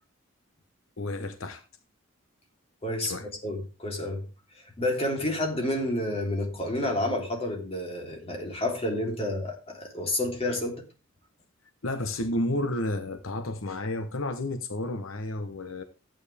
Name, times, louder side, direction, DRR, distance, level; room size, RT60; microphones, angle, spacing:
voice 1, 1.0-1.6 3.0-3.3 11.8-15.8, left 1 dB, 80° left, 1.1 m, -31 dB
voice 2, 2.8-3.1 3.4-4.2 4.8-10.8, left 1 dB, 30° left, 3.4 m, -29 dB
13.5 x 9.1 x 3.5 m
head